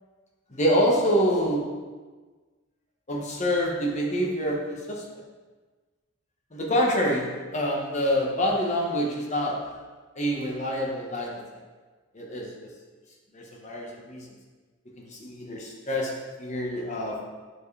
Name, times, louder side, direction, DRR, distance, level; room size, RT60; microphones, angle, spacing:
voice 1, 0.5-1.6 3.1-5.0 6.5-9.6 10.2-11.3 12.1-12.5 13.3-14.2 15.0-17.2, equal, 35° left, -1 dB, 1.2 m, -26 dB
9.5 x 4.7 x 3.3 m, 1.4 s
head